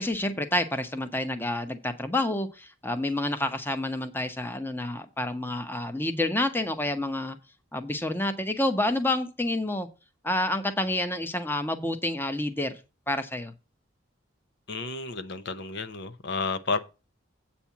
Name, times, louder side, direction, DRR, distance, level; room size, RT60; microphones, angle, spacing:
voice 1, 0.0-7.4 7.7-9.9 10.2-12.8 13.1-13.5, left 1 dB, 10° left, 0.9 m, -29 dB
voice 2, 14.7-16.8, left 4 dB, 55° left, 0.8 m, -31 dB
8.4 x 4.3 x 7.1 m
head